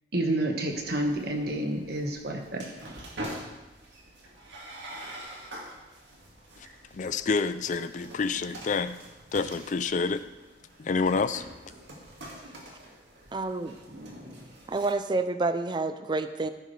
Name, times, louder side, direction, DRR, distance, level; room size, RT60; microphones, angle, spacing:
voice 1, 0.1-3.1, right 1 dB, 60° right, 1.5 m, -30 dB
sound 1, 0.7-14.9, right 1 dB, 90° right, 2.1 m, -45 dB
voice 2, 6.9-9.0 9.3-10.2 10.8-11.5, left 4 dB, 45° left, 0.4 m, -28 dB
voice 3, 13.3-13.8 14.7-16.5, right 3 dB, 25° right, 0.4 m, -28 dB
14.0 x 10.5 x 3.3 m
head